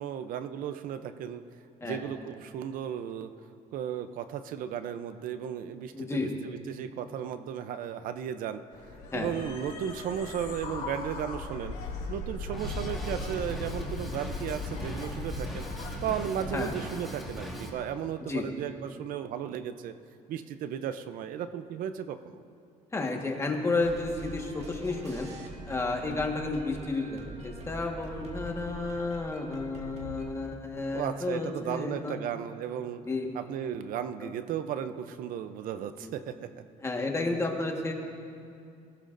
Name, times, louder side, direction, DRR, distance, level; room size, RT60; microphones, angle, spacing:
voice 1, 0.0-1.4 1.8-3.3 3.7-8.6 9.1-11.7 12.1-15.6 16.0-19.9 20.3-22.4 30.9-33.0 33.3-36.3, right 9 dB, 70° right, 10 dB, 0.6 m, -35 dB
voice 2, 5.9-6.3 9.1-9.3 16.5-16.7 18.3-18.5 22.9-25.3 25.6-32.2 33.0-33.3 34.2-34.3 36.0-36.1 36.8-37.9, left 3 dB, 20° left, 1 dB, 1.5 m, -32 dB
sound 1, 8.7-16.9, left 2 dB, 90° left, 2.8 m, -38 dB
Drum kit, 12.5-17.7, equal, ahead, 1.7 m, -40 dB
sound 2, 23.8-30.3, right 1 dB, 45° right, 1.6 m, -44 dB
20.5 x 16.0 x 2.6 m, 2.5 s
cardioid pair, 140°, 15 cm